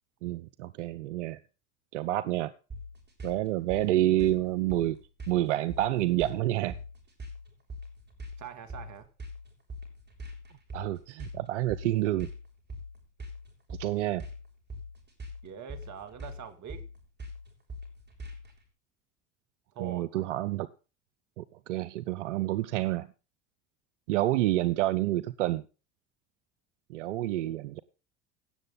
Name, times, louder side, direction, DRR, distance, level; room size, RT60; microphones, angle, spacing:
voice 1, 0.2-1.4 1.9-2.5 3.2-5.0 5.3-6.7 10.7-12.3 13.8-14.2 19.8-20.7 21.4-23.1 24.1-25.6 26.9-27.8, right 15 dB, 90° right, 14 dB, 0.6 m, -28 dB
sound 1, 2.7-18.6, left 1 dB, 30° right, 6.5 m, -43 dB
voice 2, 8.4-9.1 15.4-16.9 19.7-20.2 27.5-27.7, right 8 dB, 55° right, 9 dB, 2.6 m, -43 dB
17.5 x 7.5 x 3.9 m, 0.34 s
hypercardioid pair, 75°, 35 cm